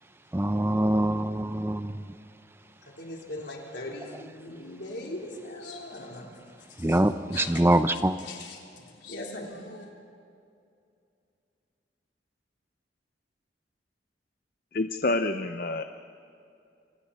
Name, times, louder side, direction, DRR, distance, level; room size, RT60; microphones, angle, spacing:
voice 1, 0.3-1.9 6.8-8.2, right 1 dB, 15° right, 10 dB, 0.6 m, -24 dB
voice 2, 3.0-6.3 6.6-7.0 7.3-7.6 8.2-9.9, left 2 dB, 70° left, -1 dB, 4.0 m, -40 dB
voice 3, 14.7-15.8, left 2 dB, 50° left, 7 dB, 0.7 m, -27 dB
30.0 x 25.5 x 4.4 m, 2.5 s
head